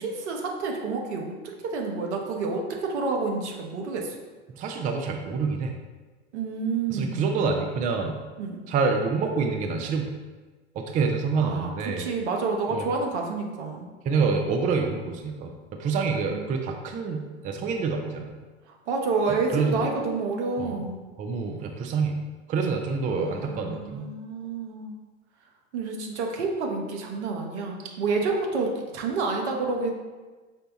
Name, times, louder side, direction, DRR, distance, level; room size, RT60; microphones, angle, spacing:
voice 1, 0.0-1.3 1.6-4.2 6.3-7.2 8.4-8.6 11.4-13.9 16.3-16.4 18.7-21.0 23.1-24.9 25.7-29.9, right 4 dB, 70° right, 1 dB, 1.0 m, -29 dB
voice 2, 4.6-5.7 6.9-8.2 8.7-10.1 10.7-12.0 12.7-12.9 14.0-18.3 19.3-19.9 20.6-20.8 21.2-22.2 22.5-24.1, right 4 dB, 25° right, 3 dB, 0.4 m, -27 dB
5.5 x 2.2 x 4.0 m, 1.3 s
hypercardioid pair, 95°, 35 cm